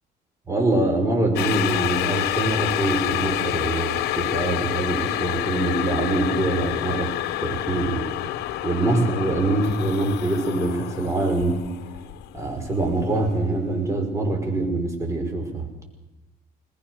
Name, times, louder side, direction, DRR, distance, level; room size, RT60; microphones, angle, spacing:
voice 1, 0.5-7.1 7.4-8.1 8.6-11.6 12.3-15.7, right 2 dB, 20° right, 2 dB, 5.5 m, -24 dB
sound 1, 1.4-13.4 13.8-13.9, left 14 dB, 85° left, 0.9 m, -28 dB
21.0 x 20.5 x 6.5 m, 1.0 s
cardioid pair, 110°, 17 cm